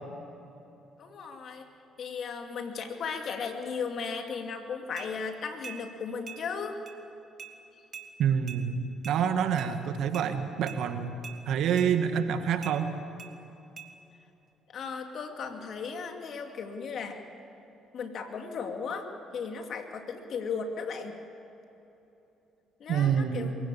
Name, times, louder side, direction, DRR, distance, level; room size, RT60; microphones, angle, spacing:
voice 1, 1.0-1.7 2.0-6.8 14.7-17.2 17.9-21.2 22.8-23.5, left 5 dB, 60° left, 5 dB, 2.4 m, -36 dB
sound 1, 5.0-5.1 5.6-5.8 6.3-6.4 6.9-7.0 7.4-7.5 7.9-8.1 8.5-8.6 9.0-9.2 9.6-9.7 10.1-10.3 10.7-10.8 11.2-11.4 11.8-11.9 12.6-12.8 13.2-13.3 13.8-13.9, right 7 dB, 50° right, 1.9 m, -43 dB
voice 2, 8.2-11.1 11.5-12.9 22.9-23.5, right 8 dB, 70° right, 8 dB, 1.6 m, -27 dB
23.5 x 15.5 x 8.5 m, 2.9 s
supercardioid pair, 60°, 0 cm